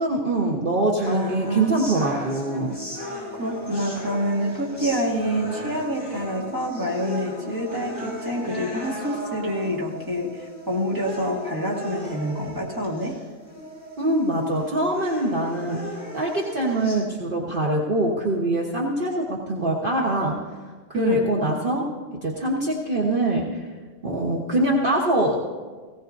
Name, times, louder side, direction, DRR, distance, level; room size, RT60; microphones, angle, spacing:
voice 1, 0.0-2.7 14.0-15.8 16.1-20.4 20.9-21.9 22.2-23.7 24.0-25.4, right 1 dB, 50° right, -2 dB, 1.4 m, -23 dB
sound 1, 1.0-17.0, left 1 dB, 45° left, 5.2 m, -36 dB
voice 2, 1.1-1.7 3.4-13.2 20.9-21.3, equal, 15° right, -4 dB, 2.1 m, -27 dB
18.5 x 17.0 x 2.7 m, 1.4 s
omnidirectional pair, 1.2 m